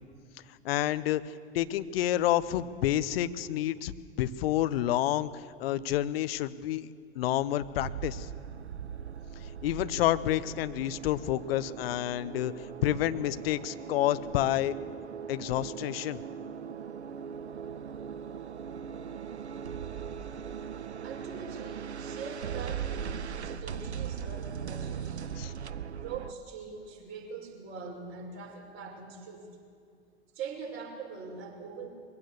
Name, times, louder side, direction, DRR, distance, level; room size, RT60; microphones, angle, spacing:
voice 1, 0.6-3.9 4.2-6.9 7.1-8.3 9.6-14.7 15.3-16.2 25.4-25.5, left 13 dB, 65° left, 14 dB, 0.9 m, -29 dB
sound 1, 7.8-26.3, right 7 dB, 90° right, 0.6 m, -39 dB
voice 2, 21.0-25.2 26.0-29.6 30.3-31.9, right 5 dB, 40° right, 0 dB, 5.4 m, -43 dB
22.0 x 15.5 x 8.1 m, 2.2 s
figure-of-eight pair, 80°, 32 cm